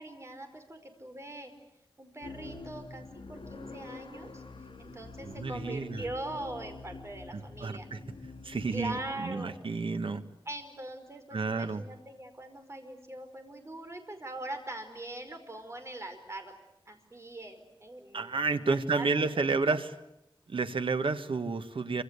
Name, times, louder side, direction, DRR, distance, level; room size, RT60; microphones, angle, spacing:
voice 1, 0.0-1.5 2.0-4.4 4.8-7.9 8.7-9.8 10.5-16.5 16.9-19.4 19.7-19.8, right 1 dB, 30° right, 6 dB, 5.1 m, -42 dB
sound 1, 2.2-9.1, left 3 dB, 75° left, 5.2 m, -46 dB
voice 2, 5.2-6.0 7.3-8.0 8.4-10.2 11.3-11.8 18.1-19.9 20.5-22.0, right 4 dB, 70° right, 9 dB, 1.7 m, -31 dB
27.0 x 26.0 x 8.3 m, 0.85 s
wide cardioid pair, 90°, 9 cm